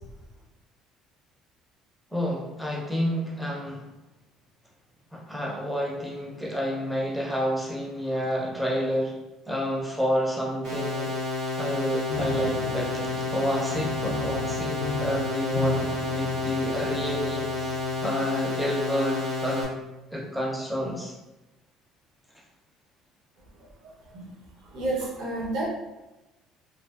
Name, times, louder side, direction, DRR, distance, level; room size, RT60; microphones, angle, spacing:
voice 1, 2.1-3.8 5.1-9.1 9.5-11.1 11.6-17.7 18.0-19.7 20.1-21.1, equal, ahead, -3 dB, 0.4 m, -29 dB
sound 1, 10.6-19.6, left 3 dB, 80° right, 1.2 m, -30 dB
Piano, 12.1-18.0, left 3 dB, 70° left, 0.3 m, -35 dB
voice 2, 23.6-24.3 24.6-25.7, right 2 dB, 60° right, -4 dB, 0.5 m, -32 dB
2.5 x 2.2 x 2.3 m, 1.0 s
cardioid pair, 175°, 0 cm